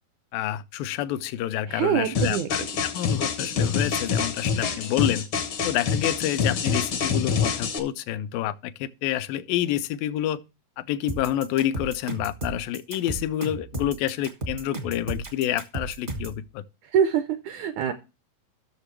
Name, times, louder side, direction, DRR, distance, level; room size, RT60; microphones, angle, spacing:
voice 1, 0.3-5.3 5.6-10.4 10.8-16.6, left 12 dB, 85° left, 2.3 m, -28 dB
voice 2, 1.7-2.5 16.8-17.9, right 8 dB, 80° right, 1.7 m, -24 dB
sound 1, 2.1-7.8, left 6 dB, 65° left, 1.3 m, -26 dB
sound 2, 11.1-16.4, right 2 dB, 45° right, 0.6 m, -33 dB
13.5 x 6.7 x 3.2 m
omnidirectional pair, 4.0 m